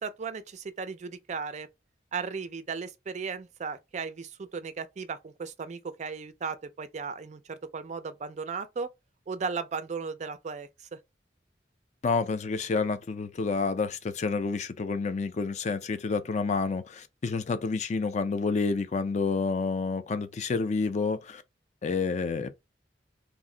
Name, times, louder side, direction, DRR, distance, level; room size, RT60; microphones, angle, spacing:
voice 1, 0.0-1.7 2.1-8.9 9.3-11.0, right 5 dB, 40° right, 0.4 m, -36 dB
voice 2, 12.0-21.4 21.8-22.6, left 4 dB, 40° left, 0.4 m, -29 dB
2.5 x 2.0 x 3.6 m
head